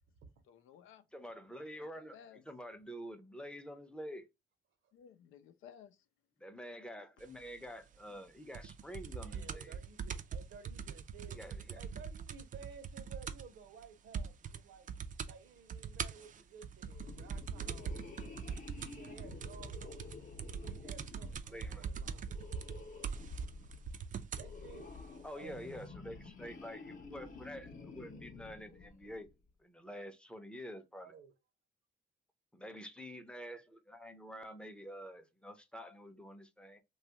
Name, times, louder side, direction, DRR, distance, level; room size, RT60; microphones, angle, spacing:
voice 1, 0.5-1.0 1.8-2.4 4.9-6.0, left 8 dB, 90° left, 0.5 m, -56 dB
voice 2, 1.1-4.3 6.4-9.8 11.3-11.8 21.5-21.9 25.2-29.3 29.6-31.1 32.5-36.8, equal, 5° left, 0.6 m, -48 dB
sound 1, 8.5-13.6 13.8-13.9 14.1-14.6 14.9-15.3 15.7-24.5 25.3-25.4, right 7 dB, 40° right, 0.4 m, -42 dB
voice 3, 9.2-14.9 15.2-18.4 18.7-20.3 20.7-22.4 24.4-24.9 25.3-25.7 26.0-26.1 31.0-31.3, right 6 dB, 75° right, 0.8 m, -55 dB
sound 2, 16.8-29.3, left 3 dB, 45° left, 0.7 m, -50 dB
3.0 x 2.3 x 2.8 m
cardioid pair, 90°, 20 cm